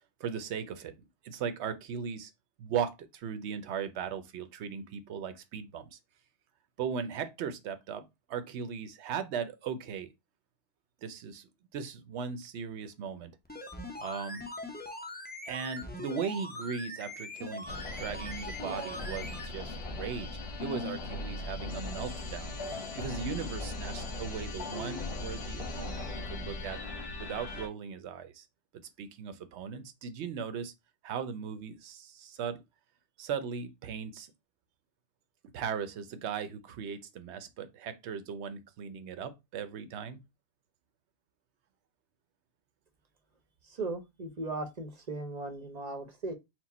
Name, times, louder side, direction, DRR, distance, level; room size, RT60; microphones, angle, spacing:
voice 1, 0.2-0.9 1.2-2.3 2.6-6.0 6.8-10.1 11.0-11.5 11.7-13.3 14.0-14.4 15.4-20.3 20.6-22.5 23.0-26.8 27.2-28.5 29.0-30.7 31.0-32.6 33.2-34.3 35.5-40.2, right 7 dB, 80° right, 0.9 m, -38 dB
sound 1, 13.4-19.5 19.8-19.9, left 1 dB, 10° left, 0.5 m, -42 dB
sound 2, 17.7-27.7, left 2 dB, 65° left, 1.2 m, -38 dB
voice 2, 43.7-46.3, right 2 dB, 40° right, 0.8 m, -37 dB
4.5 x 2.1 x 4.0 m
omnidirectional pair, 1.1 m